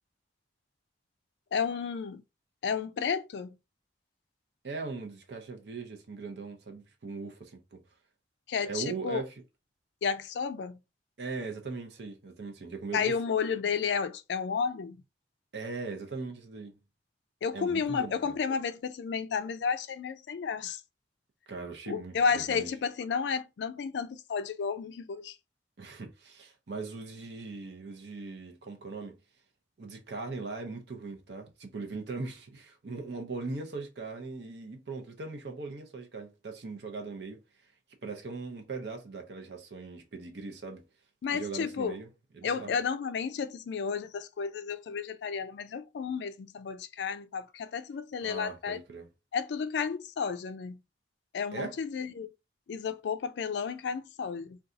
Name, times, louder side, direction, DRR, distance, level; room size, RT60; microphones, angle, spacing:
voice 1, 1.5-2.2 2.6-3.6 8.5-9.2 10.0-10.8 12.9-15.0 17.4-20.8 21.9-25.3 41.2-41.9 42.4-48.8 49.3-50.8 51.3-52.3 52.7-54.6, left 6 dB, 65° left, 0.3 m, -32 dB
voice 2, 4.6-7.8 8.6-9.4 11.2-13.2 15.5-16.8 17.5-18.3 21.5-22.7 25.8-29.1 29.8-37.7 38.0-40.8 41.3-42.8 48.2-49.1 51.5-51.8, right 4 dB, 65° right, 0.6 m, -40 dB
2.6 x 2.3 x 3.7 m
head